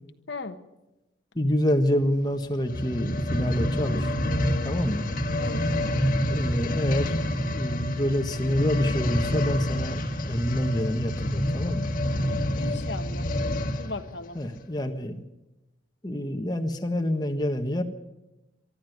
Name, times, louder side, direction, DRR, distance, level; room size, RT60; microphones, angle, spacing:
voice 1, 1.3-4.1 4.6-5.1 6.3-7.1 7.5-11.9 14.3-15.2 16.0-17.8, equal, 20° left, 5 dB, 1.4 m, -27 dB
sound 1, 2.6-13.9 14.6-14.7, left 1 dB, 45° left, 1.7 m, -27 dB
voice 2, 12.3-13.3 13.8-14.4, left 3 dB, 65° left, 8 dB, 1.3 m, -37 dB
24.0 x 13.0 x 9.3 m, 0.99 s
head